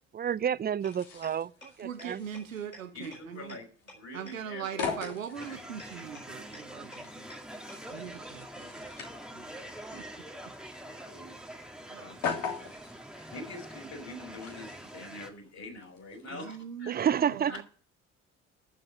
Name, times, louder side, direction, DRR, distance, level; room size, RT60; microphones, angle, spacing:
voice 1, 0.1-2.2 16.9-17.6, right 9 dB, 25° right, 0.5 m, -30 dB
sound 1, 0.8-0.9 1.2-1.3 1.6-1.7 2.0-2.1 2.3-2.4 2.7-2.8 3.1-3.2 3.5-3.6 3.9-4.0 4.3-4.4 4.6-4.7 5.0-5.1 5.4-5.5 5.8-5.9 6.1-6.2 6.5-6.6 6.9-7.0 7.3-7.4 7.7-7.8, left 1 dB, 90° left, 4.2 m, -47 dB
sound 2, 0.8-16.3, left 5 dB, 55° left, 3.2 m, -42 dB
voice 2, 1.8-3.6 4.1-7.3 7.9-8.9 9.3-9.5 9.9-10.6 11.9-13.0 16.3-17.6, right 8 dB, 85° right, 0.8 m, -42 dB
voice 3, 2.9-4.9 5.5-5.6 10.7-11.4 12.0-12.2 13.1-17.0 17.5-17.6, left 2 dB, 40° left, 5.9 m, -45 dB
sound 3, 5.3-15.3, right 1 dB, ahead, 1.9 m, -45 dB
11.0 x 7.7 x 8.8 m
figure-of-eight pair, 45°, 39 cm